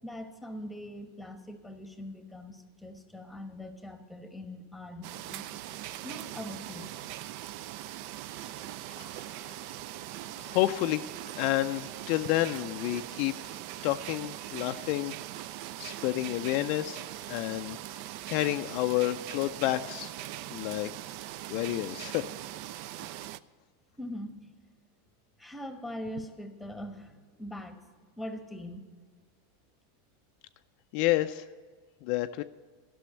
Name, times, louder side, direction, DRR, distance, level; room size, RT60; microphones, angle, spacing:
voice 1, 0.0-5.4 6.0-7.0 23.9-24.5 25.4-27.8 28.2-28.9, left 1 dB, 5° left, 7 dB, 1.1 m, -42 dB
sound 1, 5.0-23.4, right 14 dB, 55° right, 0.3 m, -41 dB
voice 2, 9.0-9.6 10.3-15.1 15.8-17.0 17.3-18.0 18.3-20.1 20.5-20.9 21.5-22.2 30.9-31.5 32.0-32.4, left 16 dB, 55° left, 9 dB, 0.3 m, -30 dB
11.5 x 6.1 x 8.0 m, 1.5 s
hypercardioid pair, 120°, 0 cm